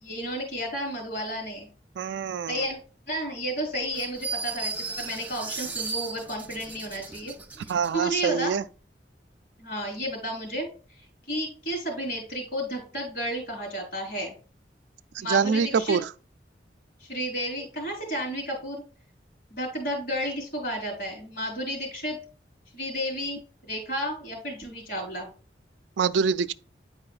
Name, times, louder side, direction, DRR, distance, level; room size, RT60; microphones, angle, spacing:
voice 1, 0.0-1.7 2.5-2.8 3.1-7.3 7.9-8.6 9.6-10.7 11.3-14.3 15.2-16.0 17.0-18.8 19.5-22.2 22.7-25.3, equal, 65° left, 3.4 m, -32 dB
voice 2, 2.0-2.6 7.7-8.6 15.1-16.1 26.0-26.5, right 6 dB, 85° right, 0.3 m, -25 dB
sound 1, 3.9-7.9, right 4 dB, 10° right, 0.4 m, -35 dB
9.5 x 4.7 x 2.4 m
head